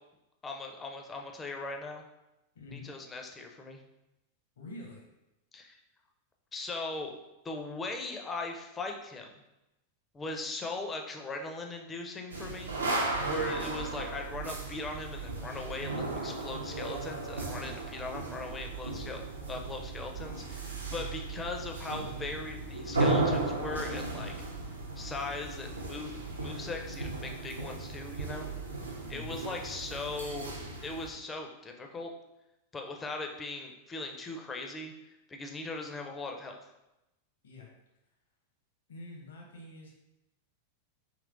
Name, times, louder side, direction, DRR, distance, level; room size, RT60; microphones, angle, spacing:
voice 1, 0.4-2.0 2.7-3.8 5.5-5.8 6.5-7.2 7.4-9.4 10.1-19.2 19.5-24.3 25.0-28.5 29.1-30.6 30.8-32.1 32.7-34.9 35.3-36.6, left 3 dB, 20° left, 3 dB, 0.4 m, -39 dB
voice 2, 2.5-2.9 4.6-5.1 20.9-21.1 29.0-29.4 37.4-37.7 38.9-39.9, left 2 dB, 65° left, 0 dB, 0.7 m, -46 dB
sound 1, 12.3-31.1, right 3 dB, 75° right, 0.5 m, -35 dB
sound 2, 22.2-27.1, left 7 dB, 85° left, 0.9 m, -50 dB
3.0 x 3.0 x 2.4 m, 0.93 s
figure-of-eight pair, 90°, 0 cm